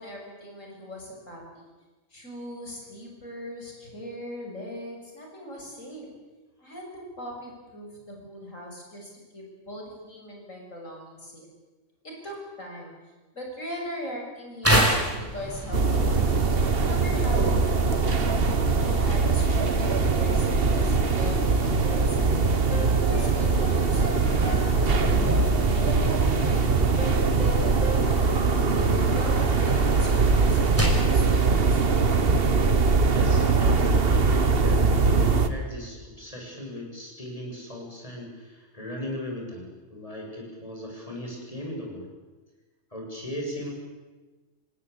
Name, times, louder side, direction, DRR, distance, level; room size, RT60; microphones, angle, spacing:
voice 1, 0.0-1.6 2.1-6.1 6.6-11.5 12.0-12.9 13.3-16.2 16.7-17.8 18.8-20.5 20.7-21.4 21.6-22.5 23.0-25.4 25.8-28.3 28.7-32.3, equal, 70° left, 0 dB, 7.2 m, -40 dB
sound 1, 14.6-31.1, equal, 10° right, 5.3 m, -31 dB
sound 2, 15.7-35.5, right 4 dB, 45° right, 1.5 m, -22 dB
sound 3, 21.8-28.0, equal, 85° right, 7.5 m, -38 dB
voice 2, 33.0-42.1 42.9-43.7, left 1 dB, 25° left, 0 dB, 7.2 m, -37 dB
26.5 x 18.0 x 8.6 m, 1.2 s
omnidirectional pair, 1.4 m